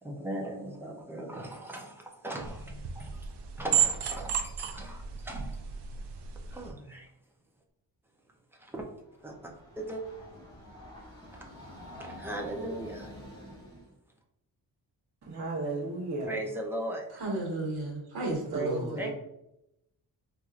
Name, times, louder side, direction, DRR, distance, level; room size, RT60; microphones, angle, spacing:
voice 1, 0.0-3.2 3.6-5.6 6.5-7.1 8.6-8.8 9.2-10.0 12.0-13.1 16.3-17.0 19.0-19.1, right 1 dB, 5° right, 0.5 m, -38 dB
sound 1, 2.4-6.7, right 8 dB, 85° right, 0.5 m, -32 dB
Train, 9.0-13.9, equal, 10° left, 1.1 m, -47 dB
voice 2, 15.2-16.5 18.5-19.1, right 2 dB, 45° right, 0.9 m, -34 dB
voice 3, 17.1-19.0, right 2 dB, 65° right, 1.4 m, -33 dB
4.5 x 2.6 x 2.4 m
wide cardioid pair, 145°, 40 cm